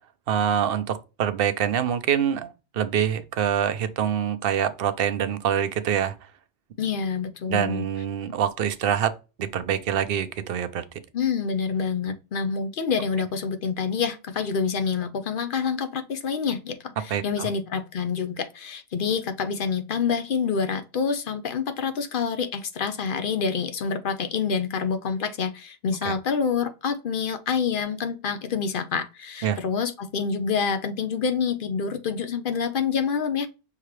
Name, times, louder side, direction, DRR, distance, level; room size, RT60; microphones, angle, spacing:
voice 1, 0.3-6.1 7.5-9.1 9.4-10.8 17.1-17.5 26.1-26.2 29.4-29.6, right 9 dB, 65° right, 0.8 m, -25 dB
voice 2, 6.8-7.8 11.1-33.5, left 6 dB, 60° left, 0.7 m, -27 dB
5.8 x 2.8 x 3.1 m
omnidirectional pair, 1.1 m